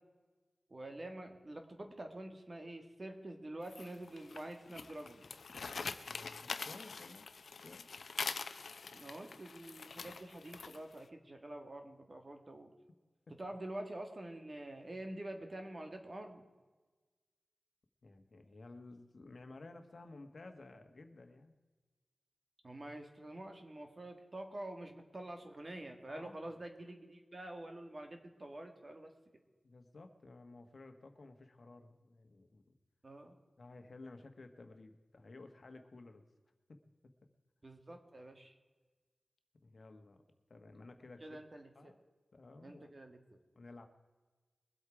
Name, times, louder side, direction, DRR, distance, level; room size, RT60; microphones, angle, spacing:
voice 1, 0.7-5.2 5.5-5.6 8.9-12.7 13.4-16.4 22.6-29.1 33.0-33.4 37.6-38.5 41.2-41.9 42.6-43.2, right 1 dB, 40° right, 5 dB, 1.9 m, -47 dB
sound 1, 3.7-11.0, left 4 dB, 85° left, 0.7 m, -44 dB
voice 2, 5.7-7.3 7.6-7.8 13.3-13.4 18.0-21.5 26.1-26.5 29.6-32.8 33.6-36.2 36.7-36.8 39.6-40.2 40.5-41.4 41.7-42.0 42.3-42.9 43.5-43.9, left 2 dB, 60° left, 6 dB, 1.3 m, -54 dB
22.0 x 8.1 x 4.9 m, 1.3 s
wide cardioid pair, 90°, 0 cm